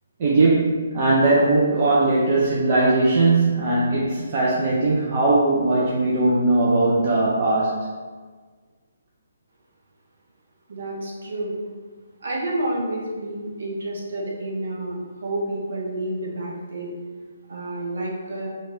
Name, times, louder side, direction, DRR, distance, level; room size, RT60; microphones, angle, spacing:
voice 1, 0.2-7.8, right 2 dB, 35° right, -6 dB, 0.5 m, -19 dB
voice 2, 10.7-11.6 12.2-16.9 17.5-18.5, right 1 dB, 55° right, -3 dB, 0.9 m, -29 dB
3.0 x 2.4 x 4.2 m, 1.5 s
figure-of-eight pair, 135°, 0 cm